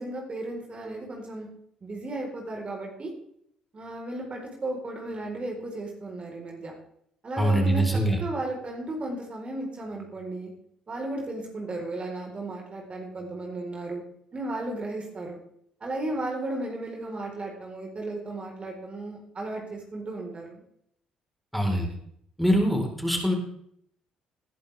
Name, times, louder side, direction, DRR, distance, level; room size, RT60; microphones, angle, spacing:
voice 1, 0.0-1.5 1.8-3.1 3.7-6.7 7.2-10.5 10.9-14.0 14.3-15.4 15.8-20.6, right 2 dB, 35° right, 0 dB, 4.2 m, -35 dB
voice 2, 7.4-8.2 21.5-21.9 22.4-23.3, right 1 dB, ahead, 1 dB, 4.2 m, -23 dB
19.5 x 11.5 x 3.5 m, 0.69 s
hypercardioid pair, 50°, 3 cm